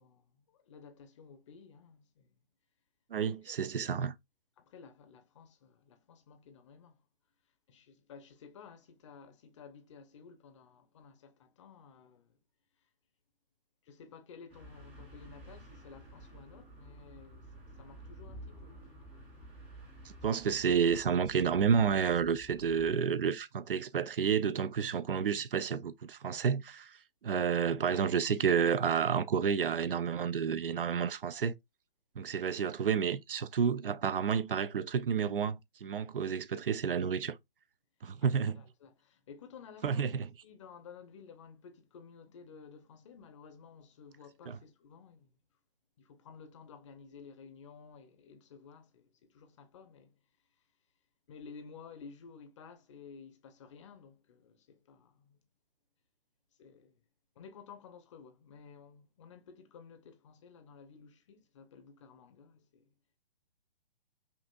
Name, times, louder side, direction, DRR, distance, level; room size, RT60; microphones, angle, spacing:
voice 1, 0.0-2.4 3.2-3.8 4.6-7.0 7.7-12.4 12.8-12.9 13.8-18.9 38.2-40.1 40.4-45.4 46.0-50.2 51.3-55.4 56.6-57.0 57.4-62.9, left 6 dB, 30° left, 0.7 m, -54 dB
voice 2, 3.1-4.1 20.2-27.0 27.2-31.5 32.2-37.4 38.0-38.6 39.8-40.3 44.5-44.6, right 7 dB, 65° right, 0.5 m, -30 dB
sound 1, 14.5-22.9, right 1 dB, 5° right, 0.4 m, -51 dB
5.4 x 2.5 x 2.4 m
figure-of-eight pair, 135°, 29 cm